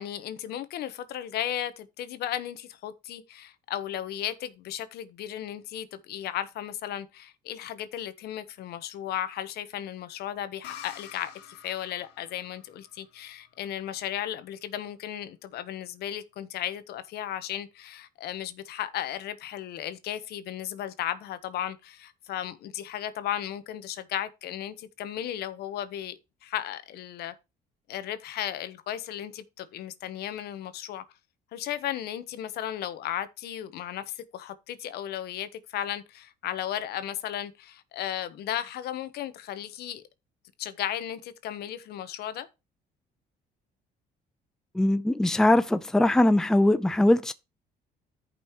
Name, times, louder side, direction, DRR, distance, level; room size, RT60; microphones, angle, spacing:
voice 1, 0.0-11.3 11.6-27.3 27.9-31.0 31.5-40.0 40.6-42.5, left 11 dB, 75° left, 1.0 m, -35 dB
sound 1, 10.6-14.2, left 10 dB, 90° left, 1.7 m, -48 dB
voice 2, 44.7-47.3, left 1 dB, 5° left, 0.5 m, -21 dB
14.0 x 5.5 x 3.0 m
cardioid pair, 110°, 17 cm